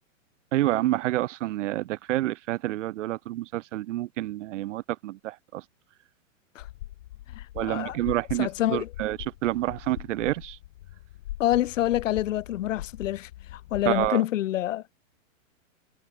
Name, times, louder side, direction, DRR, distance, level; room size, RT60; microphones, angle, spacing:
voice 1, 0.5-5.6 7.5-10.6 13.9-14.2, right 15 dB, 65° right, 0.5 m, -28 dB
sound 1, 6.6-14.1, left 15 dB, 50° left, 1.9 m, -42 dB
voice 2, 7.3-8.0 8.4-8.9 11.4-14.8, left 13 dB, 65° left, 0.9 m, -27 dB
hypercardioid pair, 165°, 40 cm